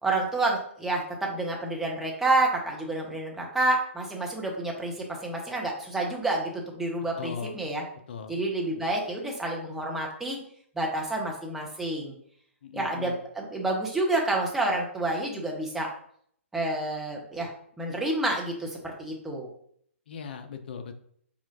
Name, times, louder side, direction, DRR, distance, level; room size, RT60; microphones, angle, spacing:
voice 1, 0.0-7.8 8.3-10.4 10.8-12.1 12.7-15.9 16.5-17.5 17.8-19.5, right 2 dB, 5° right, -1 dB, 0.6 m, -29 dB
voice 2, 7.2-7.6 8.1-8.4 8.7-8.9 12.6-13.2 20.1-21.0, left 6 dB, 45° left, 7 dB, 0.5 m, -39 dB
4.2 x 2.4 x 2.8 m, 0.64 s
figure-of-eight pair, 120°, 7 cm